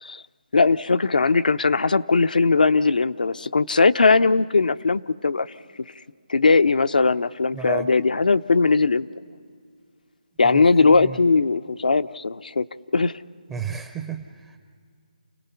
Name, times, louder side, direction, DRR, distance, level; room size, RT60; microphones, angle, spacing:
voice 1, 0.5-5.5 6.3-9.1 10.4-12.6 12.9-13.1, left 4 dB, 80° left, 12 dB, 0.6 m, -19 dB
voice 2, 7.5-7.9 10.4-10.6 10.9-11.2 13.5-14.6, right 5 dB, 10° right, 6 dB, 0.5 m, -32 dB
29.5 x 18.5 x 5.7 m, 2.2 s
figure-of-eight pair, 160°, 5 cm